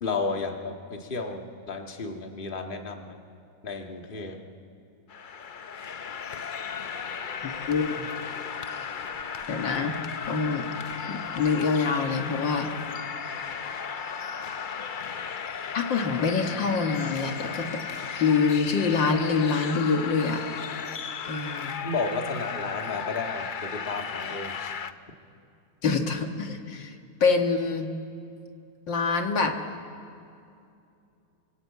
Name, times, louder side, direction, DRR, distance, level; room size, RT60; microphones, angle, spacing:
voice 1, 0.0-3.2 3.6-4.4 21.8-24.7, left 3 dB, 30° left, 3 dB, 1.9 m, -32 dB
sound 1, 5.1-24.9, left 6 dB, 70° left, 0.4 m, -35 dB
voice 2, 7.4-8.1 9.5-10.7 11.1-12.7 15.7-17.7 18.2-20.4 21.2-21.8 25.8-27.0 27.2-27.9 28.9-29.5, left 5 dB, 85° left, 4 dB, 2.3 m, -25 dB
27.0 x 25.5 x 8.5 m, 2.6 s
omnidirectional pair, 2.0 m